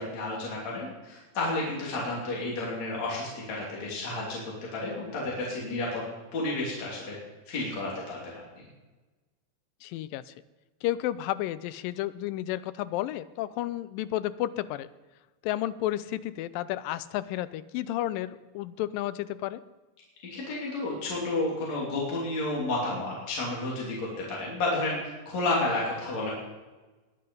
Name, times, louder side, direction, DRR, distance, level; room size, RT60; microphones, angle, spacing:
voice 1, 0.0-4.4 4.7-6.0 6.3-7.1 7.5-8.2 20.3-25.0 25.3-26.3, left 2 dB, 55° left, -5 dB, 4.0 m, -31 dB
voice 2, 9.8-10.3 10.8-14.9 15.4-19.6, left 14 dB, 85° left, 15 dB, 2.3 m, -32 dB
20.5 x 9.8 x 5.3 m, 1.2 s
omnidirectional pair, 4.0 m